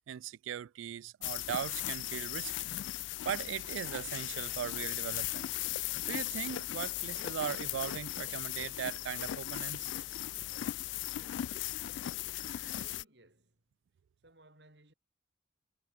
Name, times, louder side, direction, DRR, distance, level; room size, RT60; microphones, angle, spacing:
voice 1, 0.1-2.7 3.2-5.5 6.1-9.9 12.3-12.8, right 9 dB, 85° right, 0.3 m, -39 dB
sound 1, 1.2-13.0, left 14 dB, 75° left, 0.3 m, -37 dB
voice 2, 12.7-13.6 14.2-14.9, right 1 dB, 65° right, 4.6 m, -61 dB
head